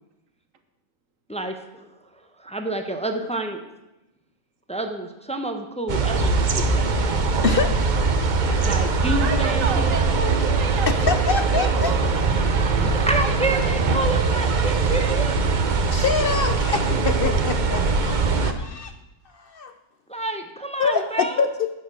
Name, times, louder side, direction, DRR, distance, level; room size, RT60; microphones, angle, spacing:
voice 1, 1.3-1.9 2.4-3.5 4.7-6.9 8.6-9.9 12.8-15.4 20.1-21.5, right 1 dB, 5° left, 5 dB, 0.8 m, -28 dB
sound 1, 5.9-18.5, right 4 dB, 40° right, 0.8 m, -21 dB
voice 2, 7.4-8.1 8.4-8.9 11.1-11.9 15.9-18.9 19.3-19.7 20.8-21.7, left 5 dB, 60° left, 9 dB, 0.6 m, -26 dB
voice 3, 9.2-12.0 12.8-14.1, right 5 dB, 80° right, 7 dB, 1.5 m, -32 dB
10.5 x 7.3 x 6.2 m, 0.97 s
omnidirectional pair, 1.4 m